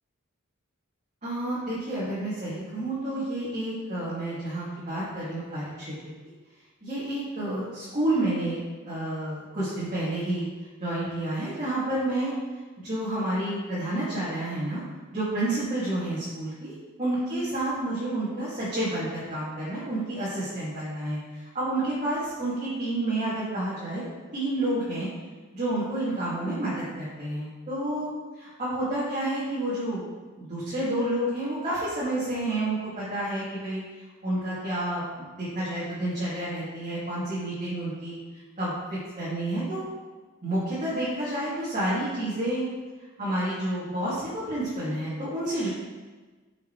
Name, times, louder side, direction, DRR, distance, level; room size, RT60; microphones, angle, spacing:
voice 1, 1.2-6.1 6.8-10.5 10.8-12.3 12.8-14.8 15.1-24.0 24.3-25.1 25.5-30.0 30.4-33.8 34.2-38.2 38.6-39.8 40.4-42.7 43.2-45.7, right 1 dB, 35° right, -11 dB, 2.6 m, -30 dB
12.0 x 5.8 x 3.3 m, 1.3 s
head